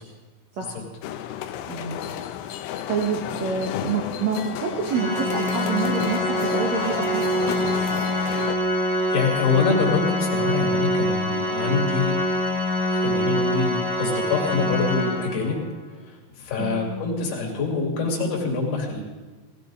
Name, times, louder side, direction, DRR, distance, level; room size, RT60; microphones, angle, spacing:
sound 1, 1.0-8.6, left 10 dB, 85° left, 3.1 m, -32 dB
voice 1, 1.7-2.0 2.9-7.3 16.6-16.9, right 5 dB, 75° right, 0 dB, 1.6 m, -27 dB
Organ, 4.9-15.7, equal, 45° right, 3.9 m, -25 dB
voice 2, 9.1-12.1 12.9-15.6 16.4-19.0, left 4 dB, 60° left, -1 dB, 4.3 m, -25 dB
18.5 x 16.0 x 3.9 m, 1.3 s
omnidirectional pair, 5.4 m